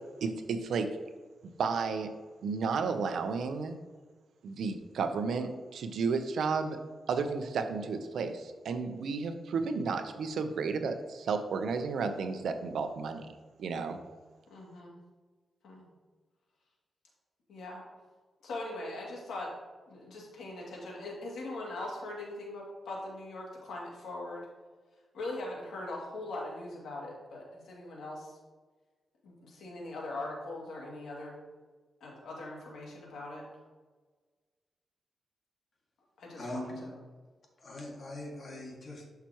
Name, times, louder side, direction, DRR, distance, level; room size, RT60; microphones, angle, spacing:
voice 1, 0.2-0.9 1.6-2.1 2.4-3.8 4.4-6.8 7.1-13.3 13.6-14.0, right 5 dB, 85° right, 7 dB, 0.8 m, -32 dB
voice 2, 14.5-15.0 15.6-15.9 17.5-17.8 18.4-19.5 19.9-24.5 25.1-28.4 29.2-31.4 32.0-33.6 36.2-36.9, left 2 dB, 90° left, -3 dB, 2.6 m, -41 dB
voice 3, 36.4-36.8 37.6-39.1, left 1 dB, 45° left, -1 dB, 2.2 m, -41 dB
11.5 x 5.9 x 3.1 m, 1.4 s
wide cardioid pair, 120°, 0 cm